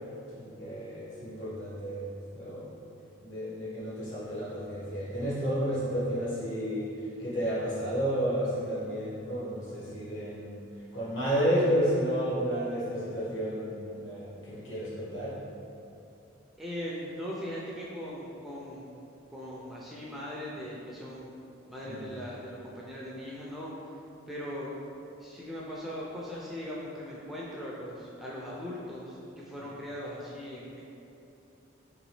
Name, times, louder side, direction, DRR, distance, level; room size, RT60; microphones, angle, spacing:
voice 1, 0.3-2.1 2.3-2.7 3.2-6.9 7.2-10.5 10.9-15.4 21.9-22.1, equal, 60° left, -8 dB, 1.4 m, -31 dB
voice 2, 16.6-18.9 19.3-21.3 21.7-23.7 24.3-24.8 25.2-30.8, equal, ahead, -6 dB, 0.3 m, -39 dB
3.9 x 3.4 x 3.1 m, 2.8 s
head